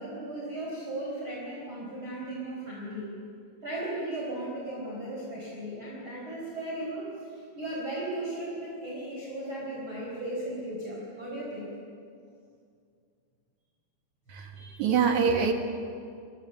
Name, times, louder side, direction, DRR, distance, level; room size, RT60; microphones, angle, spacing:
voice 1, 0.0-3.1 3.6-11.7, right 1 dB, 30° right, -4 dB, 4.9 m, -36 dB
voice 2, 14.3-15.5, right 6 dB, 55° right, 3 dB, 2.6 m, -25 dB
29.5 x 22.5 x 7.6 m, 2.3 s
omnidirectional pair, 5.1 m